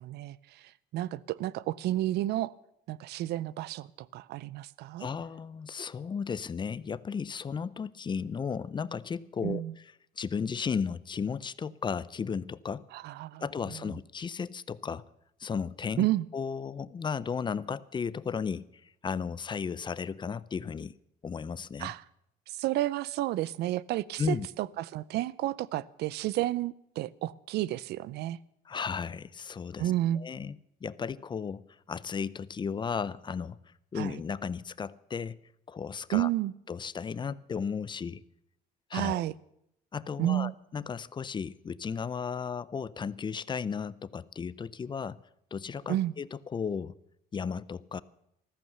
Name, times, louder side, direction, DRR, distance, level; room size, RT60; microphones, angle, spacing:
voice 1, 0.0-2.5 2.9-5.1 9.4-9.7 12.9-14.0 16.0-16.2 21.8-22.0 22.5-28.4 29.8-30.2 34.0-34.2 36.1-36.5 38.9-39.3 40.2-40.6 45.9-46.1, right 14 dB, 75° right, 0.5 m, -31 dB
voice 2, 5.0-9.6 10.2-12.8 13.4-15.0 15.4-16.1 16.3-20.9 21.2-21.9 24.2-24.5 28.7-33.6 33.9-35.4 35.7-36.3 36.7-38.2 38.9-39.2 39.9-45.2 45.5-47.0 47.3-48.0, left 6 dB, 25° left, 0.5 m, -35 dB
14.5 x 14.0 x 6.7 m
cardioid pair, 110°, 17 cm